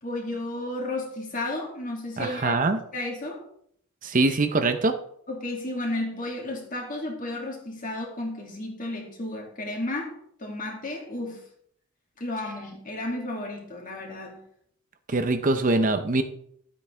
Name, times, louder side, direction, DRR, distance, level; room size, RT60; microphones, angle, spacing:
voice 1, 0.0-2.6 2.9-3.4 5.3-10.1 10.4-11.4 12.2-14.4, left 2 dB, 40° left, 0 dB, 2.4 m, -33 dB
voice 2, 2.2-2.8 4.0-5.0 15.1-16.2, right 2 dB, 40° right, 8 dB, 0.7 m, -23 dB
12.5 x 8.5 x 3.4 m, 0.67 s
head